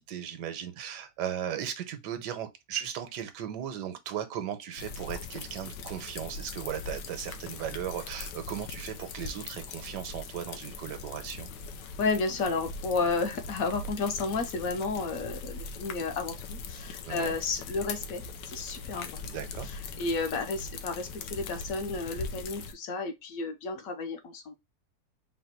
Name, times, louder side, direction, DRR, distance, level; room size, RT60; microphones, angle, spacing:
voice 1, 0.0-11.5 17.0-17.4 19.2-19.7, right 10 dB, 80° right, 1.3 m, -37 dB
sound 1, 4.8-22.7, left 4 dB, 85° left, 1.2 m, -41 dB
voice 2, 12.0-24.5, left 3 dB, 65° left, 1.1 m, -32 dB
4.0 x 2.2 x 4.3 m
omnidirectional pair, 1.8 m